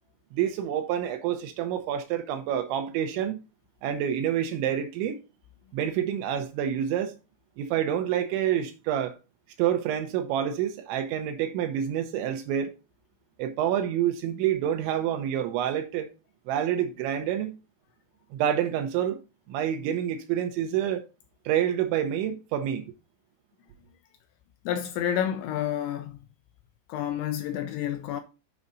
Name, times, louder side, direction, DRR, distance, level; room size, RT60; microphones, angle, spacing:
voice 1, 0.3-3.4 3.8-5.2 5.7-7.2 7.6-9.2 9.6-12.7 13.4-16.1 16.5-17.6 18.3-19.2 19.5-21.0 21.5-22.9, right 10 dB, 80° right, 2.9 m, -27 dB
voice 2, 24.7-26.2 26.9-28.2, left 10 dB, 85° left, 2.8 m, -29 dB
9.5 x 5.0 x 3.9 m
omnidirectional pair, 5.8 m